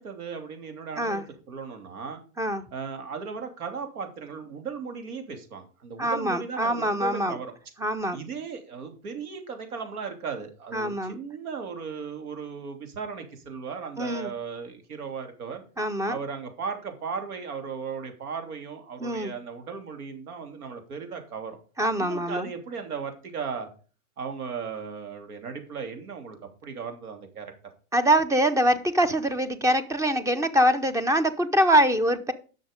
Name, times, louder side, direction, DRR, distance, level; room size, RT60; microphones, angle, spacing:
voice 1, 0.0-2.2 2.7-7.5 8.1-15.6 16.1-21.6 21.9-23.7 24.2-26.4 26.6-27.5, right 5 dB, 80° right, 3.1 m, -36 dB
voice 2, 6.0-7.4 7.8-8.2 10.7-11.2 14.0-14.3 15.8-16.2 19.0-19.3 21.8-22.5 27.9-32.3, right 1 dB, 5° right, 0.6 m, -24 dB
11.0 x 6.5 x 5.1 m
hypercardioid pair, 125°, 43 cm